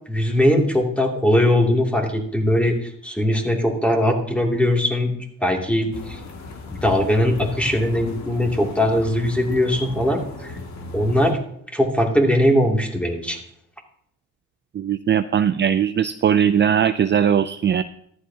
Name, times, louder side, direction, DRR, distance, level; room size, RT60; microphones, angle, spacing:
voice 1, 0.1-5.1 5.4-6.2 6.7-10.6 10.9-11.4 11.7-13.4, left 1 dB, 5° left, 0 dB, 2.7 m, -20 dB
sound 1, 5.9-11.3, left 3 dB, 65° left, 2.3 m, -37 dB
voice 2, 14.7-17.8, right 8 dB, 40° right, 12 dB, 0.5 m, -19 dB
14.5 x 12.0 x 2.9 m, 0.70 s
cardioid pair, 90°, 30 cm